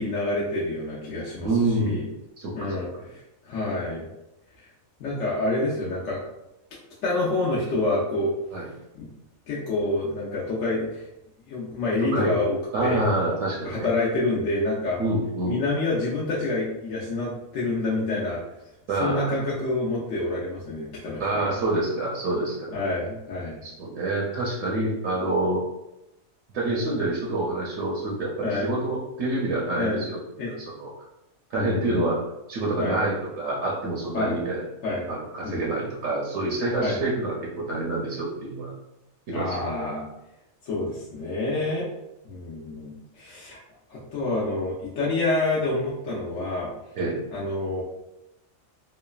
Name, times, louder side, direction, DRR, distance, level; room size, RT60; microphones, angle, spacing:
voice 1, 0.0-2.0 2.5-2.9 3.4-4.1 5.0-6.2 7.0-8.3 8.9-9.1 9.5-11.1 11.5-13.1 13.6-15.0 15.4-18.4 19.0-21.5 22.7-23.6 28.4-28.7 29.8-30.0 30.4-30.5 31.6-32.1 32.8-32.9 34.1-34.3 34.8-35.1 35.4-35.6 36.8-37.0 39.3-40.0 40.6-41.9 42.3-43.6 43.9-46.7 47.3-47.8, left 2 dB, 70° left, -6 dB, 0.9 m, -27 dB
voice 2, 1.4-2.0 2.4-3.1 8.5-8.7 12.1-12.4 12.7-13.9 15.0-15.6 18.9-19.3 21.2-22.8 23.6-25.6 26.5-30.9 31.5-32.2 32.5-34.6 35.1-38.7 39.3-39.9 47.0-47.2, right 2 dB, 75° right, -4 dB, 0.9 m, -27 dB
3.1 x 2.0 x 2.2 m, 0.90 s
omnidirectional pair, 1.4 m